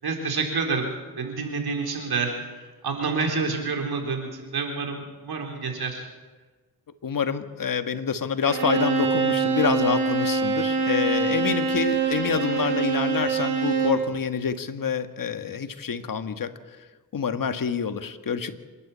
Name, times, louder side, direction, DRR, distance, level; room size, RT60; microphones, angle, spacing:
voice 1, 0.0-6.1, right 4 dB, 70° right, 2 dB, 4.2 m, -28 dB
voice 2, 7.0-16.5 17.1-18.5, left 6 dB, 55° left, 9 dB, 1.6 m, -27 dB
Bowed string instrument, 8.4-14.1, right 5 dB, 90° right, 3.6 m, -24 dB
26.5 x 11.5 x 8.6 m, 1.3 s
cardioid pair, 70°, 39 cm